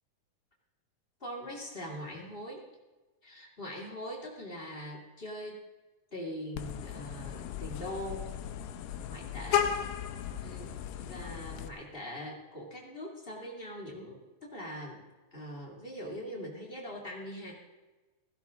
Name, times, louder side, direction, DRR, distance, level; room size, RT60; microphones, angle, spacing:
voice 1, 1.2-2.6 3.2-5.6 6.1-8.3 9.0-9.7 10.4-10.7 11.0-15.0 15.3-17.5, equal, 20° left, -2 dB, 1.6 m, -42 dB
Vehicle horn car horn honking, 6.5-11.7, left 9 dB, 80° left, 2.3 m, -35 dB
16.0 x 15.0 x 3.7 m, 1.2 s
omnidirectional pair, 4.2 m